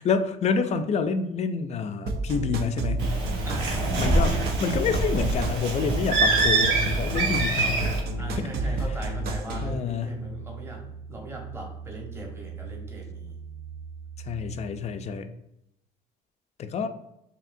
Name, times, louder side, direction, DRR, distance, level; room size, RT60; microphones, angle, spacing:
voice 1, 0.0-3.1 4.0-7.9 8.4-9.0 9.6-10.2 14.2-15.3 16.6-16.9, left 5 dB, 40° left, 9 dB, 0.4 m, -28 dB
sound 1, 2.1-9.7, right 2 dB, 65° right, 0.5 m, -30 dB
Bird, 3.0-8.0, right 2 dB, 85° right, 1.0 m, -25 dB
voice 2, 3.4-3.8 7.1-7.2 8.2-10.8 11.1-13.3, right 1 dB, 15° right, -1 dB, 1.0 m, -39 dB
sound 2, 8.9-15.1, right 6 dB, 50° right, 1.3 m, -43 dB
4.9 x 2.8 x 2.6 m, 0.83 s
cardioid pair, 110°, 17 cm